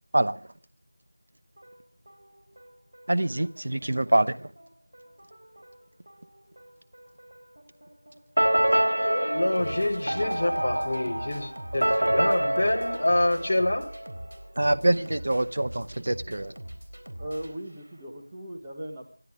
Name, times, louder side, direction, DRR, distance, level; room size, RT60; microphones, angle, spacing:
sound 1, 1.6-18.2, right 1 dB, 65° right, 4.0 m, -45 dB
voice 1, 3.1-4.5 14.6-16.5, right 1 dB, 40° right, 12 dB, 0.9 m, -25 dB
sound 2, 8.4-14.1, right 1 dB, 85° right, 0.7 m, -27 dB
voice 2, 9.0-13.9, left 1 dB, 20° left, -5 dB, 3.0 m, -26 dB
voice 3, 17.2-19.1, right 1 dB, 10° right, -2 dB, 1.4 m, -38 dB
28.0 x 12.0 x 3.6 m, 0.42 s
figure-of-eight pair, 180°, 0 cm